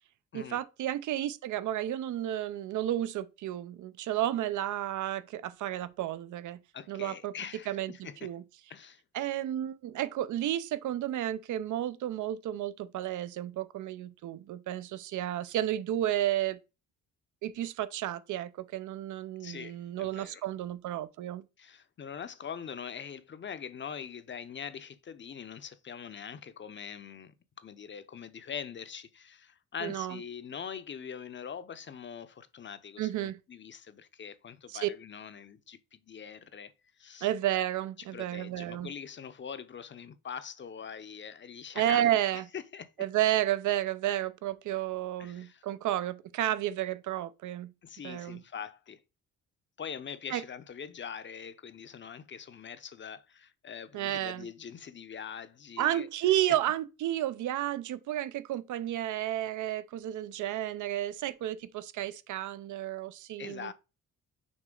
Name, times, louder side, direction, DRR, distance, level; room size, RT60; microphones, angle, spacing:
voice 1, 0.3-6.6 6.9-7.3 7.7-8.4 9.1-16.6 17.4-21.4 29.8-30.2 33.0-33.4 34.7-34.9 37.2-38.9 41.8-42.5 43.0-47.7 48.0-48.4 50.3-50.4 53.9-54.5 55.8-63.7, right 13 dB, 75° right, 0.7 m, -32 dB
voice 2, 6.7-8.3 8.7-9.0 19.4-20.4 21.6-37.3 38.1-42.9 45.2-45.6 47.8-49.0 49.8-56.1 63.4-63.7, left 7 dB, 40° left, 0.7 m, -43 dB
6.2 x 4.1 x 3.8 m
cardioid pair, 90°, 30 cm